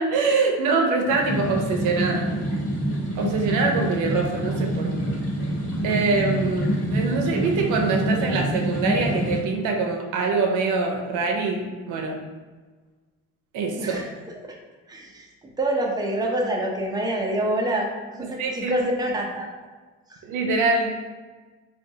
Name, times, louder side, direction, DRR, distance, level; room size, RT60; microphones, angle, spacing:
voice 1, 0.0-2.3 3.1-5.2 5.8-12.2 13.5-14.0 18.4-18.7 20.2-20.9, right 3 dB, 90° right, 2 dB, 0.6 m, -24 dB
sound 1, 1.0-9.4, right 1 dB, 50° left, 1.1 m, -26 dB
voice 2, 13.8-14.1 14.5-14.6 14.9-19.5 20.1-20.2, right 1 dB, 15° right, -1 dB, 0.6 m, -27 dB
3.6 x 2.4 x 2.7 m, 1.3 s
cardioid pair, 90°, 30 cm